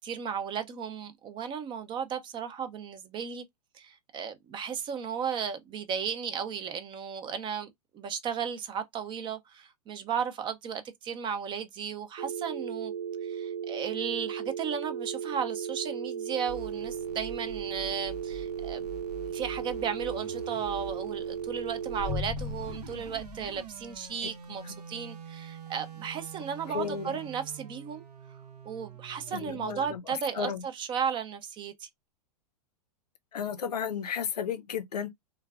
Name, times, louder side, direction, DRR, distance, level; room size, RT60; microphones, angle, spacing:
voice 1, 0.0-3.4 3.7-12.9 13.2-18.8 19.3-28.0 28.7-31.9, right 7 dB, 25° right, 0.5 m, -35 dB
sound 1, 12.2-22.2, right 8 dB, 70° right, 1.0 m, -36 dB
sound 2, 16.5-30.0, right 6 dB, 85° right, 0.7 m, -46 dB
sound 3, 22.0-24.2, left 5 dB, 35° left, 0.4 m, -37 dB
voice 2, 26.7-27.2 29.3-30.6 33.3-35.1, left 7 dB, 85° left, 0.5 m, -34 dB
3.1 x 2.2 x 2.2 m
hypercardioid pair, 110°, 20 cm